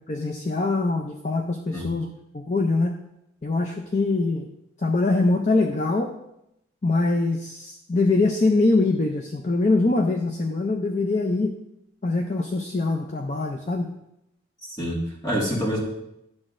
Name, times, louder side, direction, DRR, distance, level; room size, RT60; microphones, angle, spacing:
voice 1, 0.1-2.1 2.3-2.9 3.4-4.5 4.8-6.1 6.8-11.6 12.0-13.9, left 3 dB, 35° left, 4 dB, 0.5 m, -23 dB
voice 2, 14.7-15.8, equal, 20° left, -3 dB, 1.8 m, -27 dB
10.5 x 7.2 x 2.5 m, 0.83 s
head